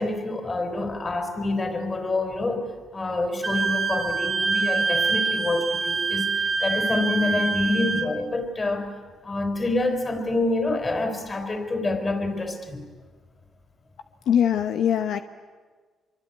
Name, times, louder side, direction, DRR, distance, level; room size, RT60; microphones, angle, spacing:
voice 1, 0.0-9.0 9.2-12.8, left 2 dB, 25° left, 6 dB, 4.4 m, -27 dB
Wind instrument woodwind instrument, 3.4-8.1, right 4 dB, 40° right, 2.8 m, -25 dB
voice 2, 14.3-15.2, left 9 dB, 75° left, 8 dB, 1.0 m, -22 dB
24.5 x 24.0 x 9.4 m, 1.4 s
cardioid pair, 90°, 0 cm